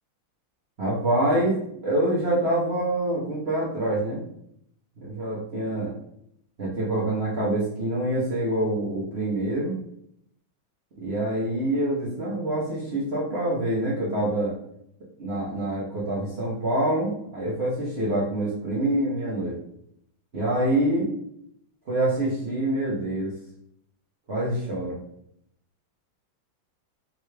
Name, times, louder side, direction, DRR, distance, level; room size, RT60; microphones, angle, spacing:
voice 1, 0.8-1.6 1.8-4.2 5.0-5.9 6.6-9.7 11.0-14.6 15.2-19.6 20.3-21.2 21.9-23.3 24.3-25.0, right 1 dB, 55° right, -8 dB, 0.7 m, -26 dB
3.7 x 2.3 x 3.2 m, 0.74 s
omnidirectional pair, 2.2 m